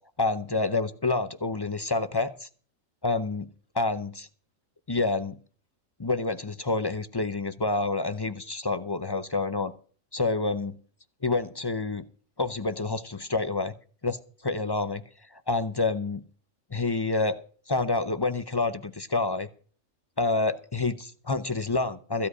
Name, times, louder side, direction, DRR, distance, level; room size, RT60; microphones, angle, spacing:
voice 1, 0.2-2.5 3.0-3.5 3.7-4.3 4.9-5.4 6.0-9.7 10.1-10.8 11.2-12.0 12.4-13.7 14.0-14.2 14.4-15.0 15.3-16.2 16.7-17.4 17.7-19.5 20.2-22.3, left 3 dB, 25° left, 12 dB, 0.5 m, -28 dB
15.5 x 5.3 x 9.6 m, 0.42 s
omnidirectional pair, 1.4 m